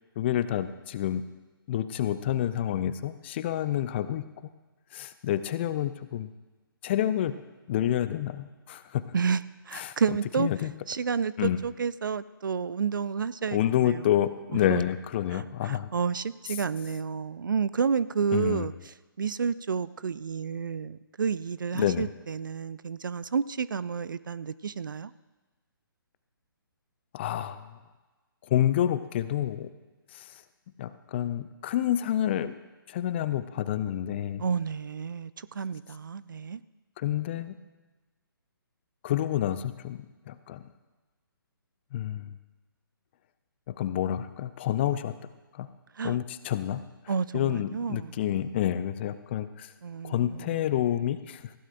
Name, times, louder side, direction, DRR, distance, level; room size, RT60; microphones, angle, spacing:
voice 1, 0.2-1.3 1.7-4.2 4.9-6.3 6.8-7.4 7.7-9.1 9.7-10.7 11.4-11.6 13.5-15.9 18.3-18.7 21.7-22.1 27.1-27.7 28.5-29.7 30.1-30.3 30.8-32.5 32.9-34.4 37.0-37.5 39.0-40.7 41.9-42.4 43.7-45.1 45.5-45.7 46.0-46.8 47.3-49.7 50.0-51.5, left 11 dB, 30° left, 13 dB, 0.6 m, -28 dB
voice 2, 9.1-10.5 10.9-14.0 14.7-14.8 15.3-25.1 34.4-36.6 45.9-46.2 47.1-48.1 49.8-50.7, right 6 dB, 60° right, 17 dB, 0.4 m, -30 dB
19.5 x 15.5 x 2.5 m, 1.2 s
figure-of-eight pair, 135°, 12 cm